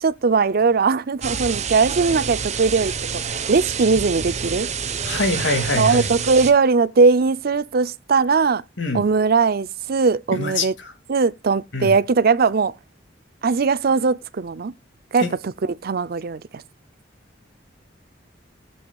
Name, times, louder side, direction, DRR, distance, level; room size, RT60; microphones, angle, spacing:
voice 1, 0.0-4.7 5.7-8.6 8.9-10.7 11.1-12.7 13.4-14.7 15.1-16.4, right 4 dB, 55° right, 0.5 m, -19 dB
sound 1, 1.2-6.5, right 6 dB, 40° right, 0.9 m, -27 dB
voice 2, 5.0-6.1 8.8-9.0 10.3-10.9 11.7-12.0 15.2-15.3, left 2 dB, 85° left, 2.3 m, -24 dB
18.5 x 7.1 x 2.3 m
head